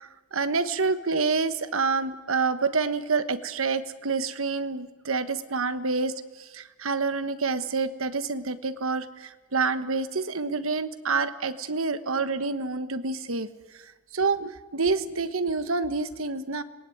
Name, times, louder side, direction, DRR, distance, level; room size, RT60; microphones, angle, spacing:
voice 1, 0.0-13.5 14.1-16.6, right 4 dB, 70° right, 11 dB, 1.4 m, -28 dB
26.5 x 20.0 x 9.2 m, 1.3 s
head